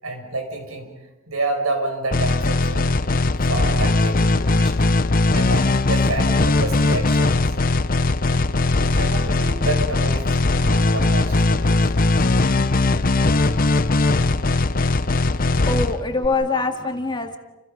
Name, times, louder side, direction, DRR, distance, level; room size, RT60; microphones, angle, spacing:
voice 1, 0.0-0.9 1.3-3.0 3.5-4.8 5.3-7.5 8.9-11.9 15.6-15.7, right 2 dB, 90° right, 4 dB, 6.3 m, -29 dB
sound 1, 2.1-16.3, left 2 dB, 40° left, 0.8 m, -19 dB
voice 2, 15.3-17.4, left 3 dB, 20° left, 5 dB, 2.0 m, -24 dB
30.0 x 29.5 x 5.3 m, 1.0 s
head